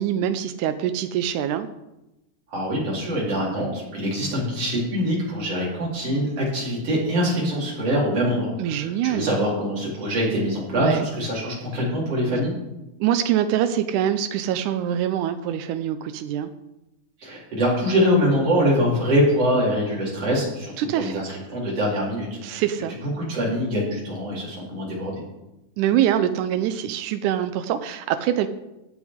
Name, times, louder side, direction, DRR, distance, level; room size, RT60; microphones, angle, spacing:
voice 1, 0.0-1.7 8.6-9.3 10.8-11.1 13.0-16.5 20.8-21.2 22.4-23.0 25.8-28.5, right 10 dB, 90° right, 9 dB, 2.1 m, -24 dB
voice 2, 2.5-12.5 17.2-22.6 23.0-25.2, equal, 50° right, -5 dB, 4.6 m, -24 dB
15.5 x 9.1 x 3.6 m, 0.95 s
omnidirectional pair, 3.5 m